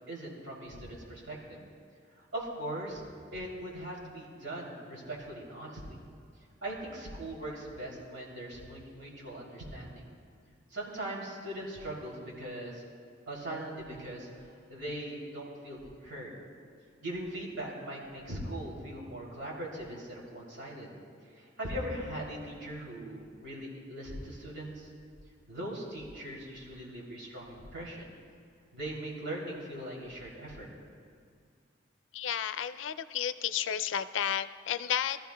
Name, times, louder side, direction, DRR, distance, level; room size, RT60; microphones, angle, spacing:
voice 1, 0.1-1.6 2.2-3.0 3.3-6.0 6.6-10.1 10.7-12.8 13.3-16.3 17.0-20.9 21.4-24.9 25.5-28.1 28.7-30.7, right 1 dB, 75° right, -4 dB, 3.2 m, -40 dB
voice 2, 32.1-35.2, left 9 dB, 80° left, 12 dB, 0.4 m, -32 dB
23.0 x 14.0 x 2.3 m, 2.3 s
head